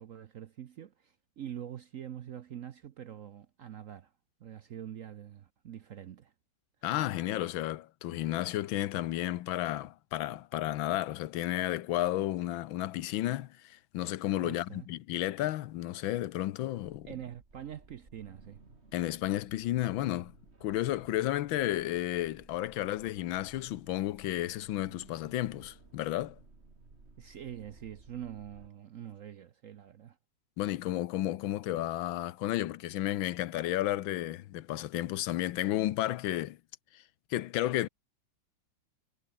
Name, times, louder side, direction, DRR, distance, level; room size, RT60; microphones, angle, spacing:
voice 1, 0.0-4.1 4.4-6.3 14.4-14.9 17.1-18.6 27.2-30.2, right 10 dB, 60° right, 0.8 m, -44 dB
voice 2, 6.8-17.1 18.9-20.3 20.6-26.4 30.6-36.6 36.9-37.0 37.3-37.9, left 14 dB, 85° left, 1.5 m, -32 dB
sound 1, 16.8-28.7, right 3 dB, 35° right, 3.3 m, -58 dB
omnidirectional pair, 2.1 m